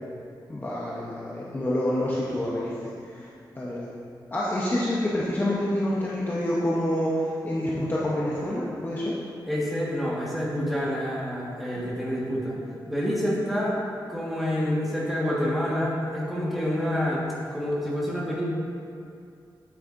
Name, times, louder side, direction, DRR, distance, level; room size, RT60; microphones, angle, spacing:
voice 1, 0.5-2.7 3.0-3.2 3.6-3.9 4.3-9.1 11.7-11.8, left 1 dB, 25° left, -7 dB, 0.8 m, -27 dB
voice 2, 9.5-12.6 12.9-13.7 14.1-17.2 17.5-18.4, equal, ahead, -7 dB, 1.6 m, -27 dB
8.9 x 8.2 x 2.6 m, 2.4 s
wide cardioid pair, 160°, 8 cm